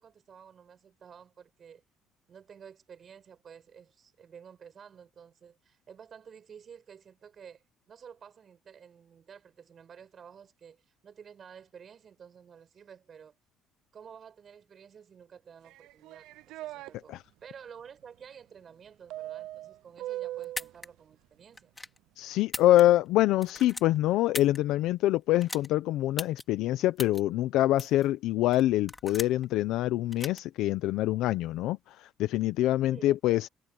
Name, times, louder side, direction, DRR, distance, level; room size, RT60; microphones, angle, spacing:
voice 1, 0.0-1.8 2.3-13.4 13.9-17.2 17.4-21.7 32.9-33.4, right 7 dB, 35° right, 7.5 m, -51 dB
sound 1, 15.6-16.9 19.1-20.7, right 14 dB, 85° right, 0.6 m, -39 dB
sound 2, 20.4-20.9 21.5-22.0 22.4-23.1 23.4-24.6 25.4-25.7 26.2-26.4 27.0-27.2 27.8-28.1 28.5-29.4 30.1-30.4, left 2 dB, 10° left, 2.8 m, -38 dB
voice 2, 22.2-33.5, left 15 dB, 75° left, 0.7 m, -25 dB
cardioid pair, 140°, 0 cm